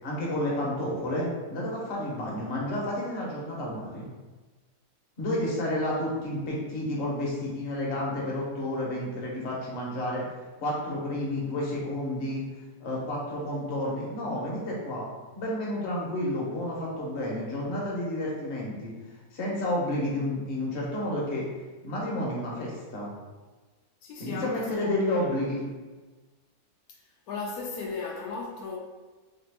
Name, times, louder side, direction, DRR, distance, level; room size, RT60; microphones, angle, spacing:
voice 1, 0.0-4.0 5.2-10.2 10.6-12.4 12.8-15.1 15.3-18.9 19.3-21.5 21.8-23.1 24.2-25.6, left 1 dB, 55° left, -4 dB, 1.1 m, -30 dB
voice 2, 24.0-25.4 26.9-27.0 27.3-28.8, left 4 dB, 85° left, -1 dB, 1.1 m, -36 dB
3.2 x 2.9 x 3.4 m, 1.3 s
omnidirectional pair, 1.5 m